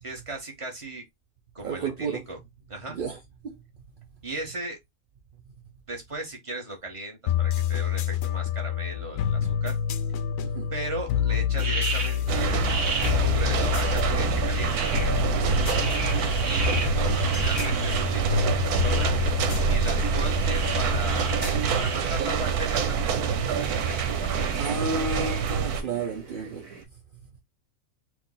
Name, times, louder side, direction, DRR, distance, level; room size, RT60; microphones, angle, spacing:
voice 1, 0.0-1.0 1.5-2.4 2.7-3.0 4.2-4.8 5.9-9.8 10.7-14.9 16.4-19.2 19.7-24.7, right 2 dB, 20° right, 1.4 m, -37 dB
voice 2, 1.6-2.2 2.9-3.2 3.4-3.6 10.4-10.7 15.4-15.8 24.6-26.6, right 4 dB, 50° right, 0.7 m, -32 dB
sound 1, 7.3-22.5, left 9 dB, 70° left, 0.9 m, -28 dB
sound 2, 11.5-26.8, right 4 dB, 65° right, 1.6 m, -36 dB
sound 3, 12.3-25.8, right 6 dB, 90° right, 1.3 m, -26 dB
4.6 x 2.5 x 3.8 m
omnidirectional pair, 1.6 m